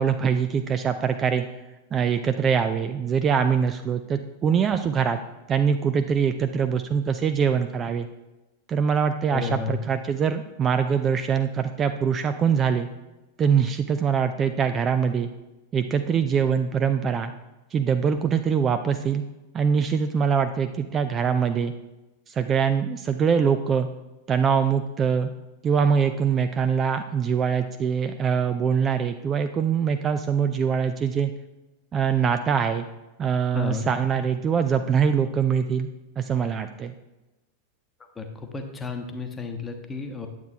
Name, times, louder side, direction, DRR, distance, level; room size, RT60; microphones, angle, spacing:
voice 1, 0.0-1.5 1.9-5.2 5.5-8.1 8.7-12.9 13.4-15.3 15.7-17.3 17.7-19.2 19.5-21.7 22.3-23.9 24.3-25.3 25.6-31.3 31.9-32.8 33.2-35.9 36.2-36.9, right 7 dB, 25° right, 9 dB, 0.4 m, -23 dB
voice 2, 9.3-9.8 33.5-33.9 38.2-40.3, left 5 dB, 15° left, 5 dB, 1.0 m, -32 dB
9.3 x 7.9 x 2.8 m, 1.0 s
figure-of-eight pair, 90°, 0 cm